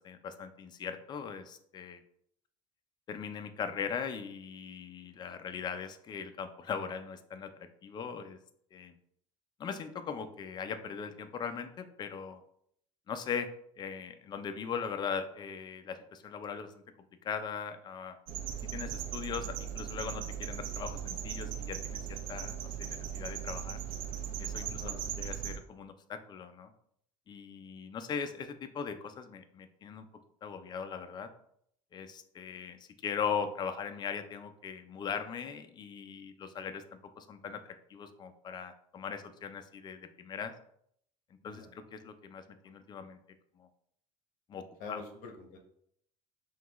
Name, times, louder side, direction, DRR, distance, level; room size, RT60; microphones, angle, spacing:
voice 1, 0.0-2.0 3.1-8.4 8.7-8.9 9.6-12.4 13.1-13.5 13.8-16.7 17.2-18.2 18.7-23.8 24.4-26.7 27.3-30.0 30.4-31.3 31.9-32.8 33.0-40.5 41.4-43.2 43.6-43.7 44.5-45.0, left 6 dB, 30° left, 9 dB, 0.4 m, -39 dB
sound 1, 18.3-25.6, right 9 dB, 65° right, 0.6 m, -38 dB
voice 2, 24.6-25.0 41.4-41.7 44.8-45.6, left 4 dB, 65° left, 3 dB, 0.9 m, -46 dB
5.7 x 2.3 x 3.0 m, 0.69 s
cardioid pair, 125°, 15 cm